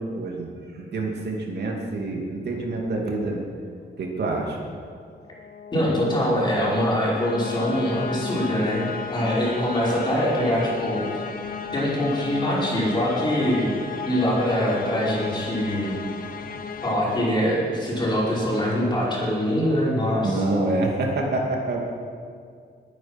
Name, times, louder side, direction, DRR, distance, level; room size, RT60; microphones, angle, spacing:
voice 1, 0.0-3.4 4.0-4.6 20.2-21.8, right 2 dB, 65° right, 0 dB, 2.5 m, -27 dB
sound 1, 5.1-18.1, left 5 dB, 50° left, 1.1 m, -35 dB
voice 2, 5.7-8.8 9.1-11.2 11.7-13.7 14.1-15.9 16.8-20.4, equal, 25° left, -6 dB, 5.3 m, -23 dB
21.0 x 9.7 x 6.1 m, 2.2 s
wide cardioid pair, 155°, 18 cm